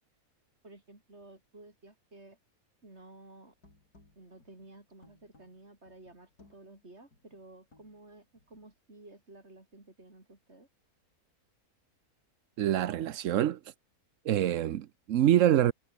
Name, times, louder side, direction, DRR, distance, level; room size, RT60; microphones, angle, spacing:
voice 1, 0.6-2.4 2.8-3.5 4.2-10.7, right 2 dB, 45° right, 5.2 m, -53 dB
sound 1, 3.4-8.8, left 2 dB, 80° left, 6.7 m, -64 dB
voice 2, 12.6-13.7 14.2-15.7, right 11 dB, 60° right, 1.0 m, -26 dB
omnidirectional pair, 1.6 m